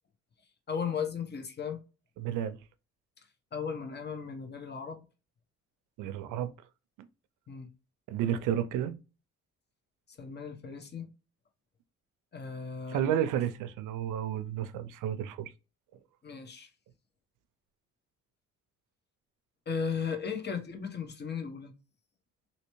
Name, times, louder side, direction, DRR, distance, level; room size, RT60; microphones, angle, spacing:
voice 1, 0.7-1.8 3.5-5.0 7.5-7.7 10.1-11.1 12.3-13.0 16.2-16.7 19.7-21.7, left 6 dB, 35° left, 1.0 m, -36 dB
voice 2, 2.2-2.6 6.0-6.5 8.1-8.9 12.9-15.5, right 10 dB, 90° right, 0.5 m, -31 dB
3.2 x 2.8 x 3.0 m
cardioid pair, 90°, 30 cm